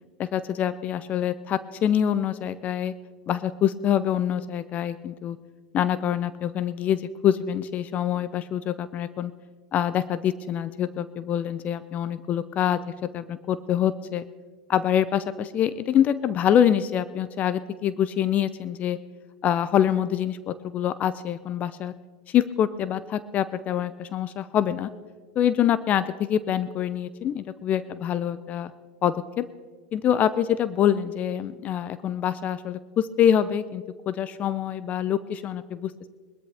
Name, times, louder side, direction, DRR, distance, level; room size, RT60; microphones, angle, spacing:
voice 1, 0.2-2.9 3.3-5.4 5.7-9.3 9.7-12.8 13.1-14.2 14.7-19.0 19.4-21.9 22.3-24.9 25.4-28.7 29.0-29.5 29.9-36.1, left 10 dB, 40° left, 15 dB, 0.6 m, -25 dB
20.5 x 13.0 x 3.4 m, 1.4 s
hypercardioid pair, 90°, 4 cm